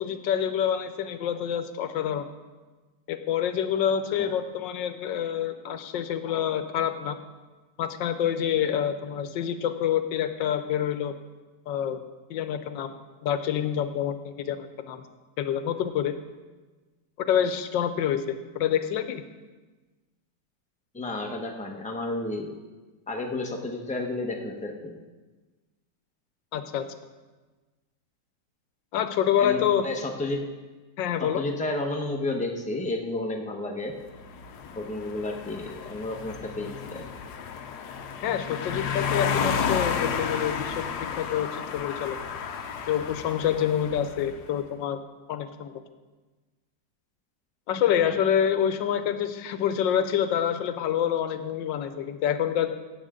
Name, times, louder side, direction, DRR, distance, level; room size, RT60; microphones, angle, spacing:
voice 1, 0.0-2.3 3.1-7.2 7.8-11.1 11.7-12.0 12.3-15.0 15.4-16.1 17.3-19.2 26.5-26.9 28.9-29.9 31.0-31.4 38.2-40.8 41.2-42.2 42.9-45.0 45.3-45.8 47.7-52.7, left 9 dB, 90° left, 10 dB, 1.4 m, -27 dB
voice 2, 20.9-22.5 23.1-24.9 29.4-30.4 31.2-33.9 34.7-37.0 48.0-48.2, left 2 dB, 5° left, 1 dB, 0.7 m, -31 dB
sound 1, 34.1-44.4, left 6 dB, 70° left, 1.2 m, -32 dB
15.5 x 8.3 x 3.7 m, 1.3 s
omnidirectional pair, 1.9 m